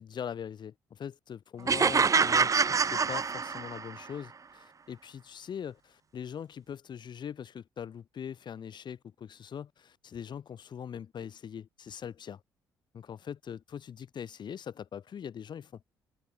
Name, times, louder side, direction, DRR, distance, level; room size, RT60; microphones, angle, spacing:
voice 1, 0.0-12.4 12.9-15.9, left 8 dB, 55° left, 3.8 m, -42 dB
sound 1, 1.7-4.0, right 5 dB, 35° right, 1.2 m, -25 dB
hypercardioid pair, 55°, 9 cm